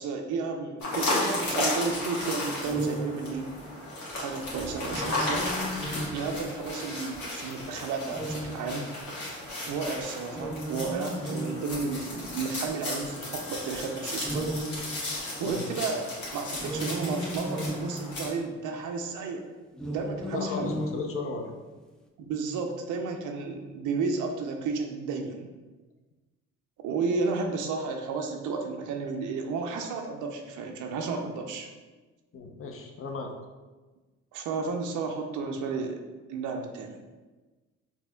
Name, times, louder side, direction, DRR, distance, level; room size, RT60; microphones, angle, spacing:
voice 1, 0.0-3.5 4.1-5.5 6.1-8.9 9.7-14.5 15.4-16.0 16.3-19.4 19.9-20.7 22.2-25.5 26.8-31.7 34.3-36.0 36.3-37.0, right 4 dB, 80° right, 3 dB, 0.5 m, -32 dB
sound 1, 0.8-18.3, left 2 dB, 70° left, 1.4 m, -34 dB
sound 2, 2.6-3.7 4.8-6.8 8.0-9.1 10.3-12.4 14.2-15.6 16.5-18.5 19.7-21.7, equal, 5° left, 0.4 m, -36 dB
voice 2, 20.4-21.5 32.3-33.3, left 3 dB, 45° left, 2 dB, 0.6 m, -35 dB
4.3 x 2.8 x 2.2 m, 1.2 s
cardioid pair, 90°, 30 cm